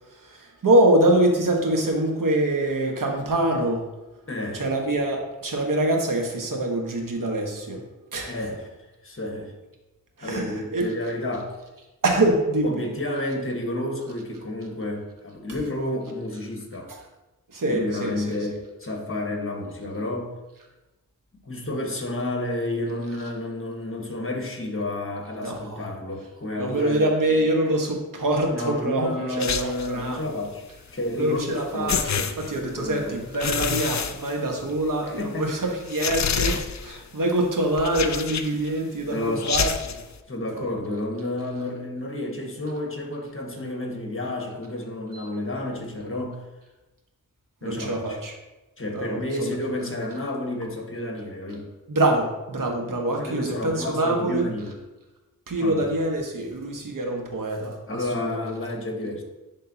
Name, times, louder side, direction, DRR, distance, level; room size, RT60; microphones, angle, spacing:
voice 1, 0.1-3.9 4.5-7.8 8.1-8.3 10.2-10.9 12.0-12.8 16.9-17.0 17.5-18.3 25.4-25.8 26.6-30.3 31.2-40.0 40.5-40.7 45.1-45.2 47.6-48.3 48.9-49.6 51.9-54.5 55.5-58.5, right 1 dB, 65° right, 1 dB, 1.3 m, -25 dB
voice 2, 4.3-4.6 8.3-8.7 9.0-9.5 10.2-11.5 12.6-16.9 17.7-20.3 21.3-27.1 28.5-30.6 30.9-32.0 32.6-33.2 35.0-35.6 39.1-39.5 40.3-46.4 47.6-48.2 48.8-51.7 53.2-54.7 55.6-55.9 57.9-59.2, left 1 dB, 40° left, 2 dB, 1.4 m, -31 dB
sound 1, 29.4-30.0 31.4-31.5 31.9-32.9 33.3-34.9 35.2-35.3 35.9-37.0 37.8-38.7 39.4-40.0, left 6 dB, 55° left, 0.5 m, -27 dB
11.0 x 3.7 x 2.8 m, 1.1 s
wide cardioid pair, 55°, 34 cm